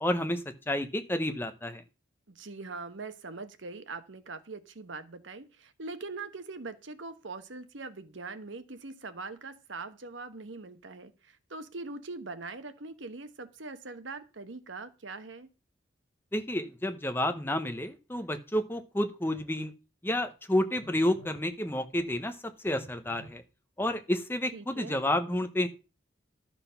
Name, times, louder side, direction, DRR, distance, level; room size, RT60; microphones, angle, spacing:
voice 1, 0.0-1.8 16.3-19.7 20.0-23.4 23.8-25.7, left 1 dB, 10° left, 9 dB, 0.8 m, -30 dB
voice 2, 2.3-15.5 24.5-25.0, right 3 dB, 70° right, 10 dB, 1.1 m, -42 dB
Telephone, 19.3-19.5 20.7-21.5 22.7-23.4, left 1 dB, 60° left, 1.6 m, -50 dB
12.5 x 6.0 x 5.6 m, 0.32 s
head